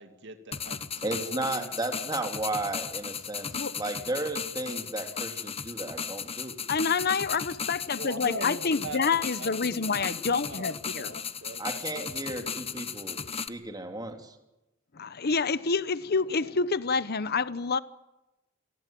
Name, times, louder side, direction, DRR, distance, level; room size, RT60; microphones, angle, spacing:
voice 1, 0.0-1.7 8.0-12.0, right 3 dB, 60° right, 2.5 m, -42 dB
sound 1, 0.5-13.5, left 7 dB, 30° left, 1.2 m, -36 dB
voice 2, 1.0-3.5 3.8-6.6 11.6-14.3, right 2 dB, 20° right, 3.3 m, -34 dB
voice 3, 6.7-11.2 14.9-17.8, left 5 dB, 50° left, 0.9 m, -28 dB
27.5 x 20.0 x 9.2 m
head